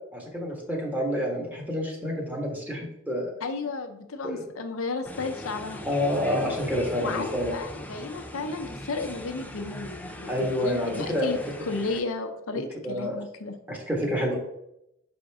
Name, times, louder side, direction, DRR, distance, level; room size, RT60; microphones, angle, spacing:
voice 1, 0.1-3.2 4.2-4.4 5.8-7.5 10.3-11.3 12.8-13.2 13.7-14.4, equal, 10° right, -1 dB, 1.5 m, -28 dB
voice 2, 3.4-5.8 7.0-11.4 11.7-13.5, left 3 dB, 80° left, 6 dB, 0.7 m, -33 dB
sound 1, 5.1-12.0, left 1 dB, 10° left, 0.5 m, -40 dB
6.3 x 5.1 x 3.5 m, 0.83 s
head